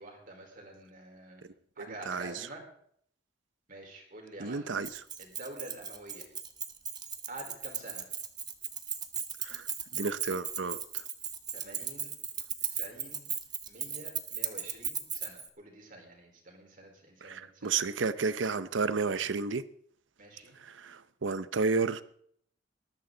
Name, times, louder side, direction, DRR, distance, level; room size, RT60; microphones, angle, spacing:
voice 1, 0.0-1.4 1.8-2.6 3.7-4.7 5.2-6.3 7.3-8.1 11.5-12.1 12.6-13.3 13.7-17.8 20.2-20.6, right 1 dB, 50° right, 2 dB, 4.4 m, -47 dB
voice 2, 4.4-5.0 9.4-9.7 9.9-11.0 17.2-19.6 20.6-22.0, right 4 dB, 85° right, 15 dB, 0.7 m, -32 dB
Keys jangling, 4.8-15.5, right 7 dB, 20° right, 1.2 m, -37 dB
19.5 x 13.5 x 3.9 m, 0.64 s
head